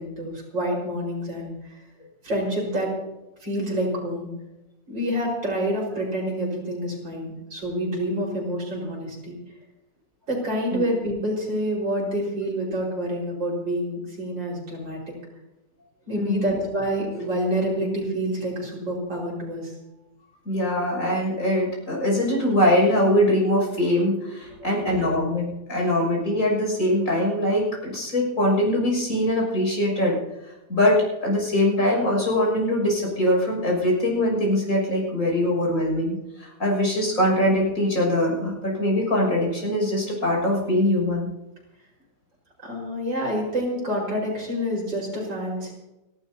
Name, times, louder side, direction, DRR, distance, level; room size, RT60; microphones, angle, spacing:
voice 1, 0.0-1.8 2.2-2.9 3.4-4.3 4.9-9.4 10.3-15.0 16.1-19.7 24.5-25.4 42.6-45.7, equal, 85° right, -3 dB, 5.7 m, -28 dB
voice 2, 16.1-16.6 20.5-30.2 30.7-41.3, left 1 dB, 45° left, -2 dB, 7.0 m, -22 dB
30.0 x 12.0 x 2.8 m, 0.97 s
omnidirectional pair, 1.9 m